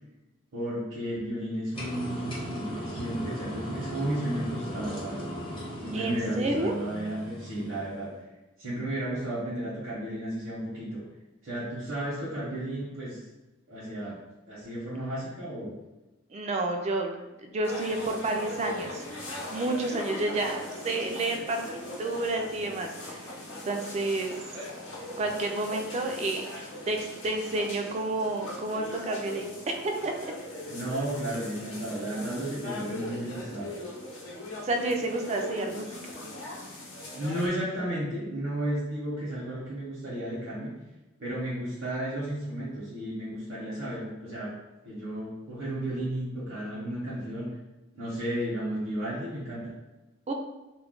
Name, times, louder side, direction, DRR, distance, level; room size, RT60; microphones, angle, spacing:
voice 1, 0.5-5.2 5.8-8.1 8.6-11.0 11.4-13.3 13.7-14.2 14.5-15.8 30.7-33.7 37.1-40.7 41.2-44.5 44.8-47.6 47.9-49.7, right 1 dB, 75° right, -8 dB, 0.8 m, -33 dB
sound 1, 1.7-8.1, equal, 25° left, 0.6 m, -38 dB
voice 2, 5.9-6.7 16.3-19.0 19.5-23.3 23.7-24.3 25.2-27.0 27.2-29.5 29.8-30.3 34.6-35.9 50.3-50.4, right 2 dB, 35° right, 3 dB, 0.3 m, -30 dB
sound 2, 17.6-37.5, left 2 dB, 70° left, 0.7 m, -40 dB
2.3 x 2.2 x 3.5 m, 1.1 s
head